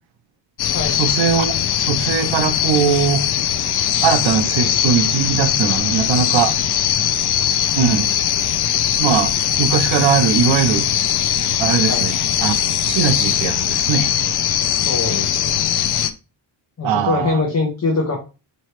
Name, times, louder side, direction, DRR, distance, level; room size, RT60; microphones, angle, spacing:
sound 1, 0.6-16.1, left 10 dB, 60° left, 0.5 m, -20 dB
voice 1, 0.9-3.3 4.0-6.6 7.7-8.1 9.0-9.3 9.6-10.9 11.6-14.1 16.8-17.4, right 7 dB, 80° right, 0.7 m, -20 dB
voice 2, 14.8-15.7 16.8-18.2, left 3 dB, 35° left, 0.9 m, -23 dB
4.2 x 3.0 x 3.1 m
wide cardioid pair, 135°, 45 cm